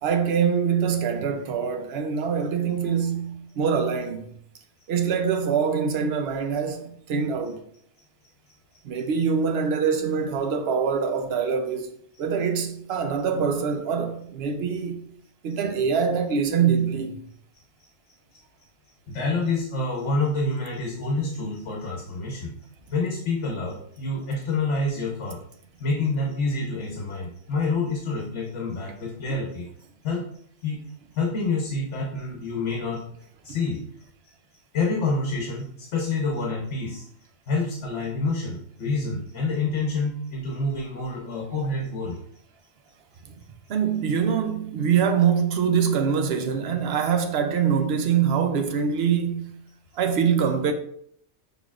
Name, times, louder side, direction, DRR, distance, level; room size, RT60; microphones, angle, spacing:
voice 1, 0.0-4.3 4.9-7.6 8.8-11.9 12.2-15.1 15.4-17.2 29.3-29.4 43.7-49.6 49.9-50.7, right 6 dB, 60° right, 0.8 m, -24 dB
voice 2, 19.1-22.6 22.9-25.4 25.8-29.7 30.0-30.3 30.6-30.8 31.1-33.0 33.4-33.8 34.7-37.0 37.5-42.2, left 3 dB, 70° left, 1.2 m, -27 dB
6.4 x 3.4 x 2.4 m
omnidirectional pair, 1.3 m